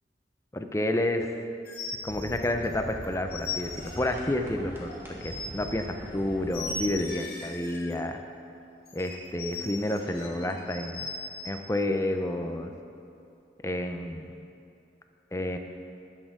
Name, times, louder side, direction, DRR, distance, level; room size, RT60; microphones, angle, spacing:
voice 1, 0.5-1.3 2.0-3.7 4.0-4.9 5.2-8.2 8.9-11.1 11.4-12.7 13.6-14.3 15.3-15.6, left 1 dB, 15° left, 5 dB, 0.5 m, -30 dB
sound 1, 1.6-2.7 3.0-4.2 4.9-5.7 6.5-8.0 8.9-11.5, left 3 dB, 60° left, 1.7 m, -38 dB
sound 2, 2.0-7.0, equal, 15° right, 1.4 m, -42 dB
11.5 x 6.4 x 6.0 m, 2.6 s
head